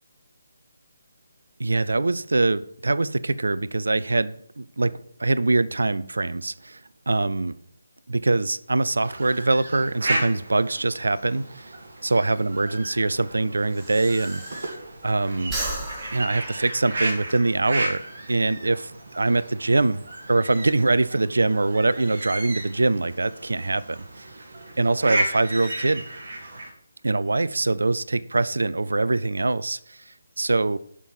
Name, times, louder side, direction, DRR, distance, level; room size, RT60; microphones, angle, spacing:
voice 1, 1.6-6.8 7.1-7.6 8.1-11.7 12.0-14.4 15.0-15.6 16.1-18.9 19.2-24.2 24.8-26.0 27.0-30.8, right 2 dB, 65° right, 0.5 m, -23 dB
sound 1, 9.0-26.7, right 1 dB, 45° right, 2.3 m, -34 dB
Breathing, 12.9-15.1 15.4-17.4, right 1 dB, 15° right, 1.8 m, -35 dB
11.0 x 6.2 x 5.4 m
figure-of-eight pair, 150°, 0 cm